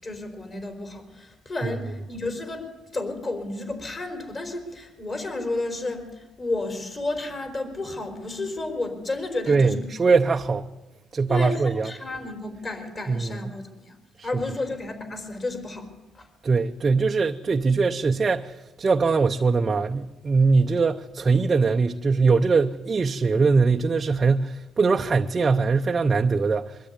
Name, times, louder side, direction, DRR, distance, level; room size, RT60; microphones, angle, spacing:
voice 1, 0.0-2.7 2.9-9.8 11.3-14.0 14.2-15.9 16.1-16.3, left 2 dB, 30° left, 4.3 m, -32 dB
voice 2, 9.5-10.7 11.1-11.9 13.1-13.4 14.2-14.4 16.4-26.8, right 4 dB, 30° right, 0.7 m, -22 dB
23.0 x 13.0 x 9.7 m
cardioid pair, 120°, 0 cm